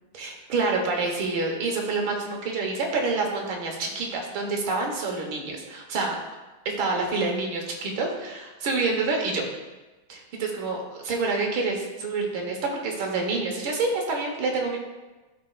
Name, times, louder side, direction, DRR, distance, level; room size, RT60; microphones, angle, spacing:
voice 1, 0.1-6.2 6.7-9.4 10.1-14.8, right 3 dB, 75° right, 0 dB, 1.9 m, -27 dB
12.5 x 4.3 x 2.4 m, 1.2 s
omnidirectional pair, 2.3 m